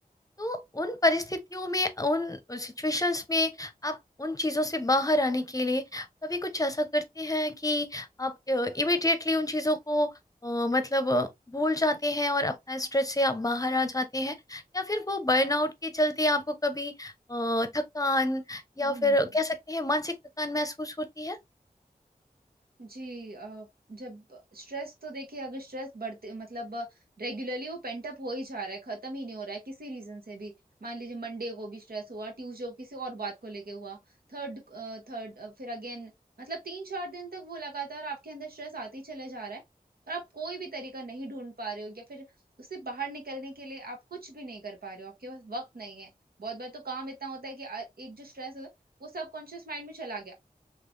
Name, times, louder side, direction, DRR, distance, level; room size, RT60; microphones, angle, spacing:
voice 1, 0.4-10.1 10.4-21.4, left 1 dB, 20° left, 0.7 m, -28 dB
voice 2, 18.8-19.4 22.8-26.9 27.2-30.5 30.8-34.0 34.3-36.1 36.4-39.6 40.1-42.3 42.6-46.1 46.4-48.7 49.0-50.3, right 2 dB, 80° right, 1.2 m, -39 dB
3.3 x 2.9 x 2.5 m
wide cardioid pair, 45°, 15 cm